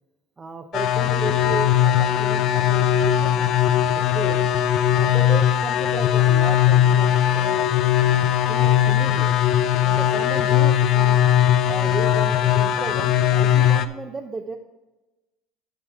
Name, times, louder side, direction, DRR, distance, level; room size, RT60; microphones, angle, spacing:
voice 1, 0.4-3.6 3.9-4.5 4.9-9.3 9.8-11.2 11.7-14.6, right 3 dB, 25° right, 3 dB, 0.8 m, -34 dB
sound 1, 0.7-13.9, left 10 dB, 55° left, 0.6 m, -19 dB
9.3 x 6.1 x 4.8 m, 1.1 s
hypercardioid pair, 85°, 0 cm